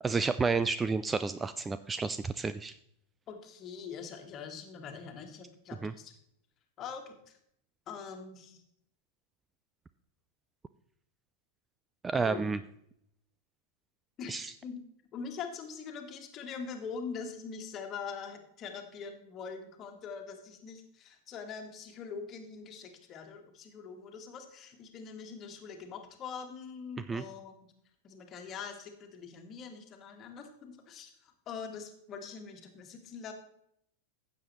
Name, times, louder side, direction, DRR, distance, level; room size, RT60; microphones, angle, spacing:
voice 1, 0.0-2.8 5.8-5.9 12.0-12.6 14.3-14.5 27.1-27.2, right 4 dB, 15° right, 13 dB, 0.3 m, -30 dB
voice 2, 3.3-6.1 6.8-7.4 7.9-8.6 12.1-12.4 14.2-14.8 15.1-27.7 28.0-33.3, left 6 dB, 30° left, 5 dB, 1.6 m, -43 dB
15.5 x 7.6 x 3.1 m, 0.72 s
figure-of-eight pair, 90°, 0 cm